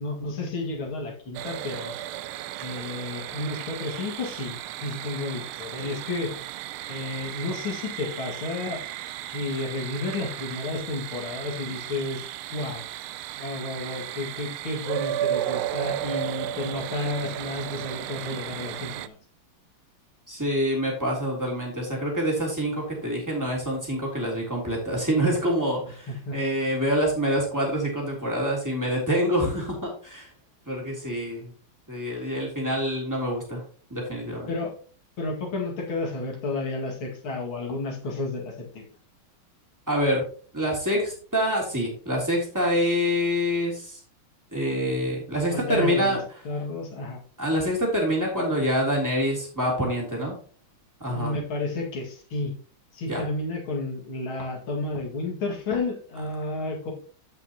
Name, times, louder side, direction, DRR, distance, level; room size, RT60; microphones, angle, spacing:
voice 1, 0.0-1.9 2.6-6.4 6.9-8.8 9.3-12.2 12.5-12.8 13.4-19.2 26.1-26.4 34.5-34.7 35.2-38.9 45.5-46.2 46.4-47.2 51.1-52.5 52.9-56.9, left 2 dB, 70° left, 0 dB, 2.9 m, -31 dB
sound 1, 1.3-19.1, right 13 dB, 80° right, 1.4 m, -34 dB
voice 2, 20.3-30.3 30.7-31.5 31.9-33.6 33.9-34.5 39.9-40.2 40.5-44.0 44.5-46.2 47.4-50.4 51.0-51.4 53.1-53.2, equal, 10° right, -2 dB, 3.1 m, -26 dB
14.0 x 5.8 x 2.9 m, 0.42 s
omnidirectional pair, 2.4 m